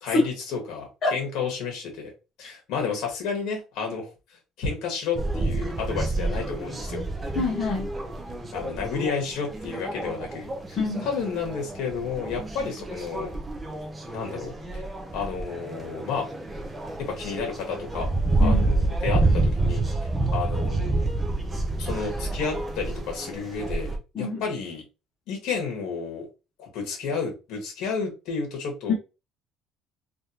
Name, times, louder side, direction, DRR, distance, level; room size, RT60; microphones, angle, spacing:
voice 1, 0.0-2.1 2.4-4.1 4.6-7.0 8.5-13.3 14.1-14.8 15.1-16.3 17.0-18.1 18.4-19.8 20.3-21.0 21.8-24.8 25.3-26.3 26.6-28.9, left 5 dB, 60° left, 1.5 m, -31 dB
sound 1, 5.2-24.0, right 2 dB, 15° right, 0.5 m, -28 dB
voice 2, 7.3-7.9 10.8-11.1 18.4-18.7 24.1-24.4 28.9-29.0, left 3 dB, 30° left, 0.8 m, -25 dB
3.4 x 2.5 x 2.8 m
cardioid pair, 175°, 0 cm